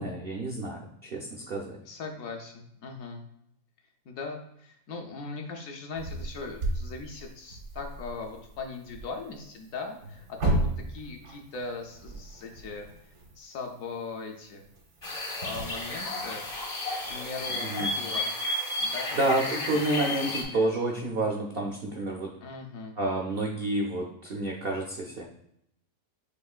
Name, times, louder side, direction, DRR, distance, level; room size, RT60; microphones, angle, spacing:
voice 1, 0.0-1.8 17.6-17.9 19.2-22.3 23.0-25.2, right 2 dB, 70° right, -1 dB, 0.5 m, -29 dB
voice 2, 1.9-3.2 4.1-12.9 13.3-14.6 15.4-16.5 17.0-18.3 18.8-19.2 19.4-19.7 20.3-20.8 22.4-23.0, left 4 dB, 65° left, 3 dB, 0.9 m, -39 dB
sound 1, 5.9-17.8, right 1 dB, 85° right, 1.6 m, -36 dB
sound 2, 15.0-20.4, left 1 dB, 35° left, 0.6 m, -32 dB
6.5 x 2.9 x 2.4 m, 0.75 s
omnidirectional pair, 1.7 m